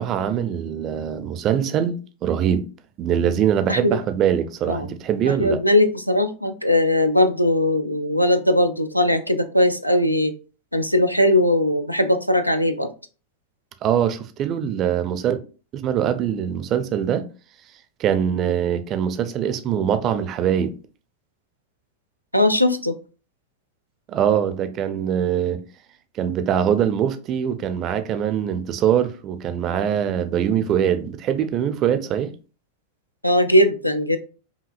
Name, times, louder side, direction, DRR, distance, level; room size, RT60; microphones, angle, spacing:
voice 1, 0.0-2.7 3.0-5.6 13.8-15.4 15.7-17.3 18.0-20.8 24.1-25.6 26.1-32.3, right 9 dB, 35° right, 0.5 m, -23 dB
voice 2, 5.3-10.3 10.7-12.9 22.3-23.0 33.2-34.2, left 1 dB, 90° left, 0.4 m, -19 dB
5.0 x 2.7 x 2.4 m
figure-of-eight pair, 90°, 0 cm